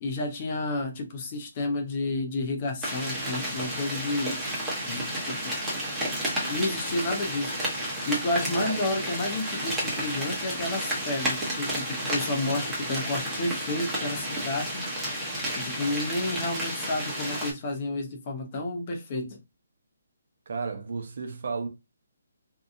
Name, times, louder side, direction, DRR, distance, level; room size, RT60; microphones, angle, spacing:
voice 1, 0.0-4.4 4.9-5.6 6.5-7.6 8.1-14.8 15.5-19.4, left 2 dB, 35° left, 0.7 m, -31 dB
sound 1, 2.8-17.5, equal, 10° right, 0.9 m, -31 dB
voice 2, 20.5-21.7, right 4 dB, 60° right, 0.7 m, -33 dB
2.7 x 2.3 x 2.5 m
hypercardioid pair, 155°, 0 cm